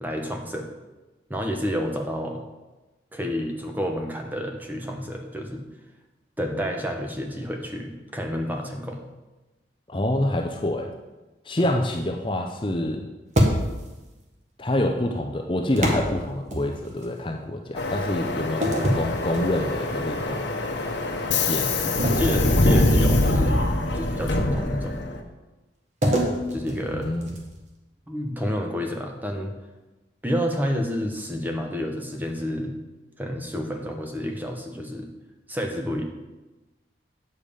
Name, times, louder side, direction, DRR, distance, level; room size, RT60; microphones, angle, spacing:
voice 1, 0.0-0.7 1.3-2.4 3.1-5.7 6.4-9.1 22.1-23.6 23.9-25.0 26.5-27.1 28.1-29.5 30.2-32.8 33.2-35.1 35.5-36.0, equal, 10° right, 2 dB, 0.9 m, -29 dB
voice 2, 9.9-10.9 11.4-13.1 14.6-20.4 21.4-22.2 26.9-27.3, left 1 dB, 25° left, 3 dB, 0.6 m, -27 dB
sound 1, 13.3-14.0 15.8-17.1 18.6-19.9 20.4-20.7 22.0-23.5 26.0-27.7, equal, 40° right, 1.4 m, -26 dB
Subway metro underground, 17.8-25.2, left 2 dB, 70° left, 1.2 m, -24 dB
9.3 x 6.9 x 5.0 m, 1.1 s
head